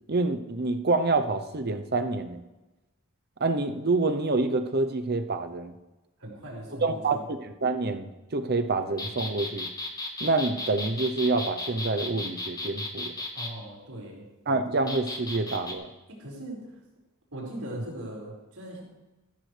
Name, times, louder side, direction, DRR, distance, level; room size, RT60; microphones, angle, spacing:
voice 1, 0.1-2.4 3.4-5.7 6.8-9.7 10.2-13.1 14.5-15.9, right 3 dB, 45° right, 8 dB, 0.8 m, -27 dB
voice 2, 6.2-7.2 13.3-14.2 16.1-16.7 17.3-18.8, right 1 dB, 85° right, -3 dB, 5.0 m, -39 dB
sound 1, 9.0-13.5 14.9-15.7, left 2 dB, 15° left, 1.2 m, -35 dB
14.5 x 13.0 x 3.4 m, 1.1 s
head